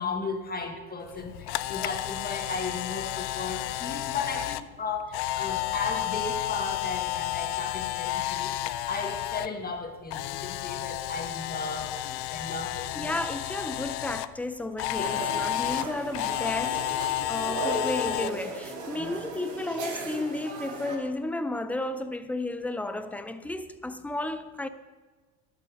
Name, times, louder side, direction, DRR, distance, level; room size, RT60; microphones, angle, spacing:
voice 1, 0.0-8.5 8.9-13.1 15.1-15.3 18.9-19.1, left 4 dB, 20° left, 1.5 m, -35 dB
Camera, 1.1-9.5 9.8-14.3 14.8-18.3, left 15 dB, 70° left, 0.5 m, -31 dB
voice 2, 13.0-17.0 17.3-24.7, left 2 dB, 5° left, 0.3 m, -33 dB
sound 1, 14.9-21.0, right 3 dB, 85° right, 2.3 m, -36 dB
11.5 x 5.8 x 6.3 m
cardioid pair, 115°, 41 cm